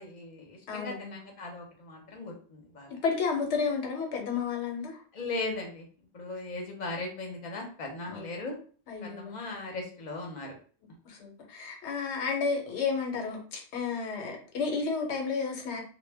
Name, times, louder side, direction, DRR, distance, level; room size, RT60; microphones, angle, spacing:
voice 1, 0.0-2.9 5.1-5.8 6.1-8.6 9.0-10.5, left 2 dB, 45° left, 1 dB, 0.7 m, -38 dB
voice 2, 0.7-1.2 2.9-5.0 8.1-8.4 8.9-9.3 11.0-15.8, left 5 dB, 80° left, 2 dB, 1.0 m, -32 dB
2.1 x 2.1 x 3.2 m, 0.42 s
omnidirectional pair, 1.1 m